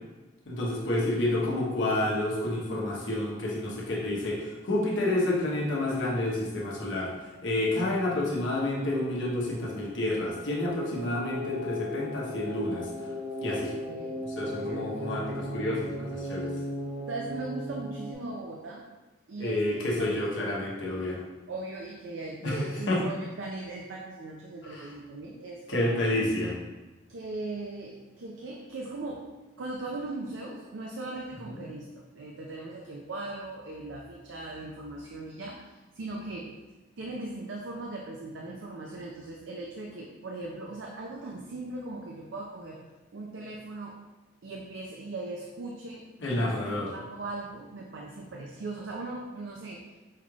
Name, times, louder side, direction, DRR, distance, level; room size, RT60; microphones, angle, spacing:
voice 1, 0.5-7.1 7.4-12.9 13.4-13.7 14.2-16.5 19.4-21.2 22.4-23.0 24.7-24.9 25.7-26.5 31.5-31.6 46.2-46.9, left 1 dB, 85° left, -4 dB, 1.0 m, -29 dB
sound 1, 8.8-18.1, left 1 dB, 30° right, 0.5 m, -37 dB
voice 2, 13.5-14.1 14.4-15.0 17.1-18.9 19.3-20.2 20.5-21.1 21.5-26.0 27.1-29.2 29.6-36.5 37.0-42.8 43.1-44.0 44.4-46.0 46.3-50.0, right 2 dB, 80° right, -1 dB, 0.5 m, -39 dB
5.6 x 3.2 x 2.4 m, 1.1 s
head